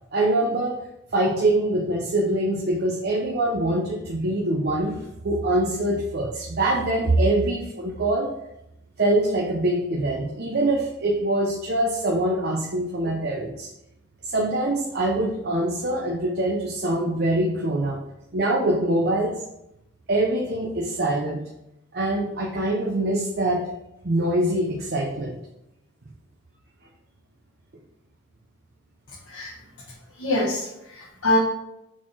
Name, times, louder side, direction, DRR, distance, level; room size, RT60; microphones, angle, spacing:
voice 1, 0.1-0.8 1.1-8.3 9.0-13.7 14.2-18.0 18.3-19.4 20.1-21.4 21.9-23.7 24.0-25.4, right 1 dB, 50° right, 0 dB, 0.7 m, -24 dB
voice 2, 30.1-31.4, left 1 dB, 85° left, -5 dB, 1.5 m, -25 dB
6.3 x 4.2 x 4.6 m, 0.86 s
head